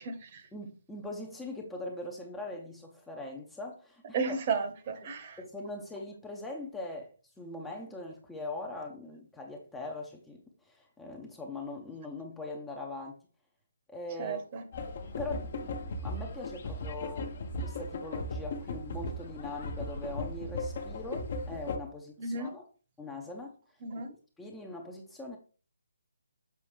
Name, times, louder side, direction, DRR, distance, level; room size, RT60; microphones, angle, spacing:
voice 1, 0.0-0.5 4.1-5.4 14.2-14.6 22.2-22.5 23.8-24.1, right 4 dB, 30° right, 1.1 m, -34 dB
voice 2, 0.5-4.2 5.4-13.2 13.9-14.4 15.2-17.3 17.6-22.6 23.0-23.6 24.4-25.4, left 2 dB, 5° left, 0.7 m, -41 dB
sound 1, 14.7-21.8, left 2 dB, 40° left, 0.9 m, -37 dB
6.9 x 4.8 x 3.2 m
figure-of-eight pair, 145°, 0 cm